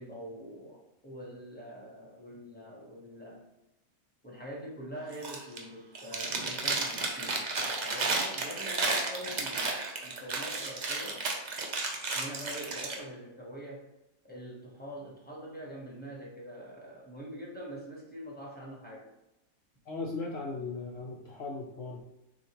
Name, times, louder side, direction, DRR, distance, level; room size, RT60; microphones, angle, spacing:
voice 1, 0.0-3.5 4.2-11.3 12.1-13.9 14.2-19.1, equal, 10° left, -4 dB, 0.9 m, -44 dB
Chewing mastication, 5.1-5.6 5.9-13.0, right 3 dB, 50° right, 0.5 m, -32 dB
voice 2, 19.9-22.1, left 3 dB, 65° left, -1 dB, 0.6 m, -37 dB
6.5 x 2.5 x 2.9 m, 0.90 s
omnidirectional pair, 1.5 m